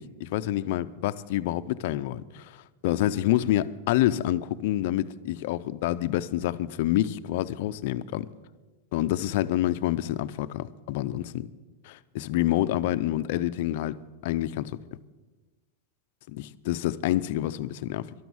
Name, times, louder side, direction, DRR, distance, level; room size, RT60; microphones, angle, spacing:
voice 1, 0.0-8.3 8.9-11.5 11.8-14.8 16.3-18.1, left 14 dB, 45° left, 0.4 m, -28 dB
12.5 x 11.5 x 7.1 m
supercardioid pair, 180°, 0 cm